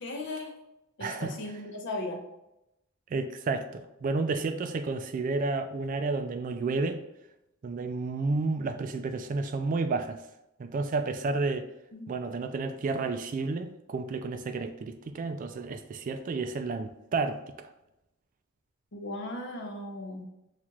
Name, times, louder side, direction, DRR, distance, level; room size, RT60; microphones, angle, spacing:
voice 1, 0.0-0.5 1.0-2.2 11.9-12.0 18.9-20.3, left 2 dB, 60° left, 2 dB, 0.7 m, -37 dB
voice 2, 1.0-1.4 3.1-7.0 7.6-10.2 10.6-11.7 12.1-17.7, right 3 dB, 40° right, 9 dB, 0.3 m, -31 dB
5.8 x 2.4 x 3.0 m, 0.88 s
head